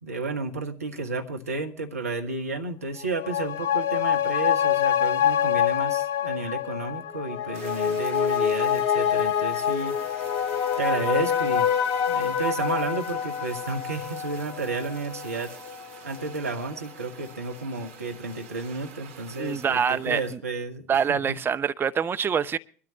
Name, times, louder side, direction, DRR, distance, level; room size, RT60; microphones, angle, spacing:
voice 1, 0.0-10.3 10.8-11.7 12.1-15.5 16.0-21.4, right 3 dB, 80° right, 1.2 m, -32 dB
sound 1, 3.0-15.8 16.2-16.3, left 9 dB, 55° left, 0.9 m, -26 dB
Fire, 7.5-20.4, right 7 dB, 65° right, 1.6 m, -47 dB
voice 2, 19.4-20.4 20.9-22.6, right 7 dB, 25° right, 0.7 m, -25 dB
23.0 x 13.0 x 2.9 m
figure-of-eight pair, 65°, 8 cm